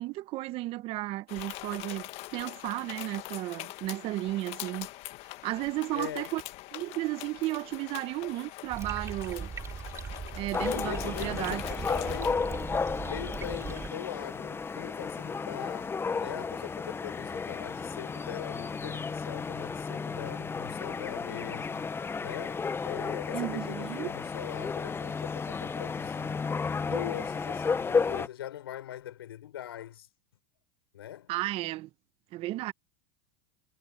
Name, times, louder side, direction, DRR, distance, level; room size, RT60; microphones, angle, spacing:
voice 1, 0.0-4.9 5.4-6.4 6.7-9.5 10.4-11.6 23.3-24.1 31.3-31.9 32.3-32.7, right 17 dB, 50° right, 1.3 m, -34 dB
sound 1, 1.3-12.3, left 20 dB, 55° left, 1.7 m, -43 dB
voice 2, 5.9-6.3 10.4-12.8 13.0-21.9 22.2-26.4 26.8-30.1 30.9-31.3, left 12 dB, 85° left, 5.0 m, -41 dB
sound 2, 8.7-13.9, right 6 dB, 25° right, 5.0 m, -39 dB
sound 3, 10.5-28.3, left 5 dB, 20° left, 1.4 m, -33 dB
hypercardioid pair, 100°, 12 cm